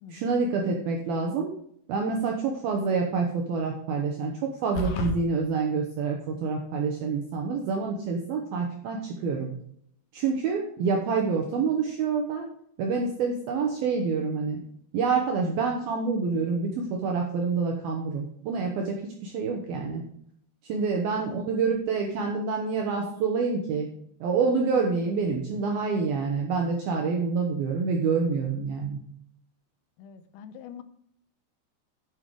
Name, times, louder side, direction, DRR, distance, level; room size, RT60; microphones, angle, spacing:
voice 1, 0.1-1.6 1.9-9.6 10.1-12.5 12.8-14.6 14.9-20.0 20.6-23.9 24.2-29.0, right 4 dB, 75° right, 2 dB, 2.2 m, -27 dB
sound 1, 4.8-5.2, left 1 dB, 65° left, 2.2 m, -29 dB
voice 2, 30.0-30.8, left 8 dB, 90° left, 11 dB, 3.4 m, -44 dB
9.2 x 8.3 x 4.7 m, 0.68 s
omnidirectional pair, 5.8 m